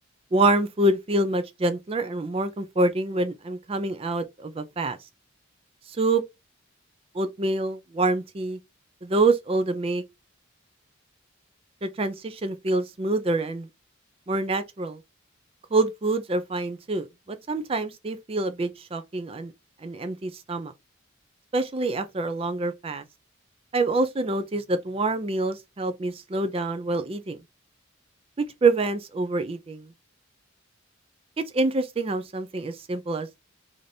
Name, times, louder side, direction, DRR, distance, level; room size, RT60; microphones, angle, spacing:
voice 1, 0.3-5.0 5.9-6.2 7.1-8.6 9.0-10.0 11.8-13.7 14.3-15.0 15.7-19.5 19.8-20.7 21.5-23.0 23.7-27.4 28.4-29.9 31.5-33.3, right 2 dB, 30° right, 0.4 m, -26 dB
4.9 x 2.6 x 2.7 m
head